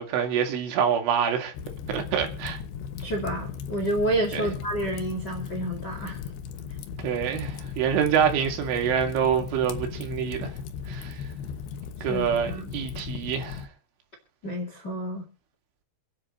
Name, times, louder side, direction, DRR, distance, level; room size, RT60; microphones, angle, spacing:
voice 1, 0.0-1.5 1.9-2.6 4.3-4.5 7.0-10.5 10.9-11.2 12.0-13.7, right 8 dB, 80° right, 4.7 m, -26 dB
Fire, 1.5-13.7, left 7 dB, 70° left, 2.8 m, -37 dB
voice 2, 3.0-6.2 12.1-12.7 14.4-15.3, right 1 dB, 35° left, 1.9 m, -29 dB
27.5 x 10.0 x 3.1 m
omnidirectional pair, 5.5 m